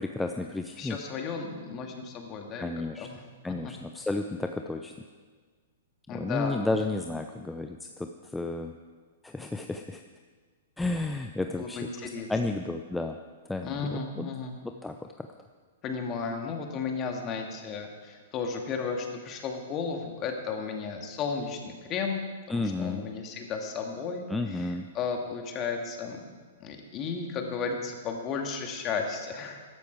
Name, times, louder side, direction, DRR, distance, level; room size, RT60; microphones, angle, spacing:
voice 1, 0.0-1.0 2.6-3.1 3.4-4.9 6.1-8.7 9.2-10.0 10.8-13.2 13.5-14.3 14.6-15.3 22.5-23.0 24.3-24.9, left 2 dB, 5° left, 5 dB, 0.6 m, -32 dB
voice 2, 0.8-2.7 3.0-3.2 6.1-6.6 11.6-12.3 13.6-14.6 15.8-22.2 22.5-26.2 26.6-29.7, left 5 dB, 30° left, 3 dB, 2.2 m, -34 dB
15.0 x 12.0 x 4.7 m, 1.5 s
hypercardioid pair, 120°, 0 cm